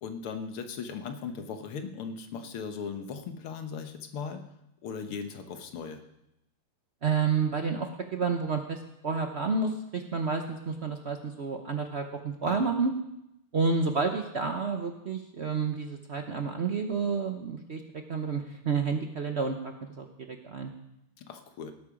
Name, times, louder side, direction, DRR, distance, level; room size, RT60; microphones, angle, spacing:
voice 1, 0.0-4.5 4.8-6.0 12.4-12.7 21.2-21.7, left 6 dB, 80° left, 7 dB, 2.1 m, -38 dB
voice 2, 7.0-12.9 13.5-17.8 18.1-20.7, right 5 dB, 70° right, 5 dB, 0.6 m, -30 dB
18.0 x 8.5 x 5.1 m, 0.84 s
omnidirectional pair, 2.4 m